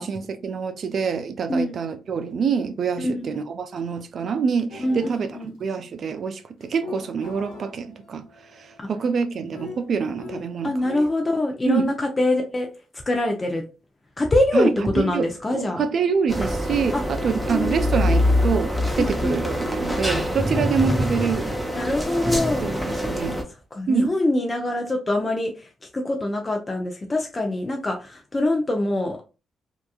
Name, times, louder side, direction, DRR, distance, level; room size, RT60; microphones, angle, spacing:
voice 1, 0.0-8.2 8.6-10.9 11.7-11.9 14.5-14.7 15.1-15.3 15.6-21.6 22.6-23.4 23.9-24.1, right 6 dB, 60° right, 0.4 m, -26 dB
voice 2, 1.5-1.8 3.0-3.2 4.8-5.5 8.8-8.9 10.6-12.7 13.1-13.6 14.2-15.8 16.9-17.0 17.5-17.9 19.0-19.3 20.5-20.7 21.7-22.8 23.7-29.2, left 1 dB, 30° left, 0.5 m, -24 dB
sound 1, 4.7-5.2 6.6-11.2, left 3 dB, 85° left, 0.7 m, -41 dB
sound 2, 16.3-23.4, left 1 dB, ahead, 0.8 m, -24 dB
2.8 x 2.2 x 2.3 m
supercardioid pair, 50°, 0 cm